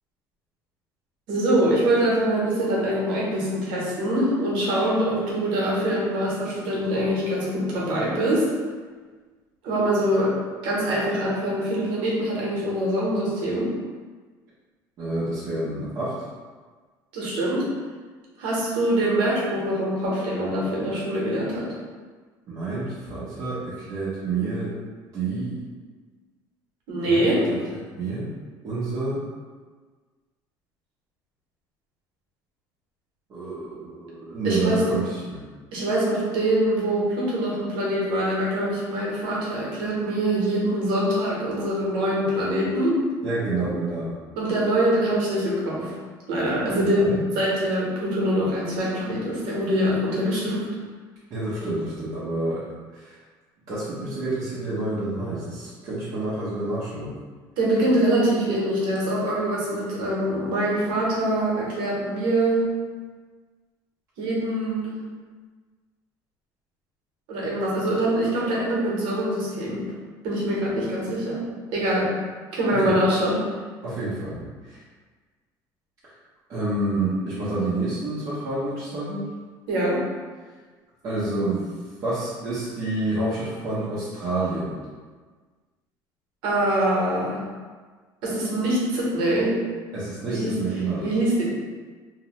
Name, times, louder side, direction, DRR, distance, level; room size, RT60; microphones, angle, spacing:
voice 1, 1.3-8.4 9.6-10.3 10.6-13.7 17.1-17.6 18.4-21.7 26.9-27.5 34.4-34.8 35.7-43.0 44.4-45.9 46.3-50.7 57.6-62.7 64.2-64.9 67.3-69.8 70.2-71.4 71.7-72.1 72.5-73.4 79.7-80.0 86.4-87.4 88.2-89.6 90.3-90.5 91.0-91.5, right 1 dB, 75° right, -5 dB, 0.9 m, -24 dB
voice 2, 15.0-16.1 22.5-24.7 25.1-25.6 27.0-27.2 28.0-28.3 28.6-29.2 33.3-35.4 43.2-44.1 46.8-47.2 51.3-52.6 52.9-53.2 53.7-57.1 72.7-72.9 73.8-74.8 76.5-79.3 81.0-81.7 82.0-84.8 89.9-91.0, right 2 dB, 45° right, -11 dB, 0.7 m, -28 dB
2.8 x 2.0 x 2.9 m, 1.4 s
cardioid pair, 135°, 8 cm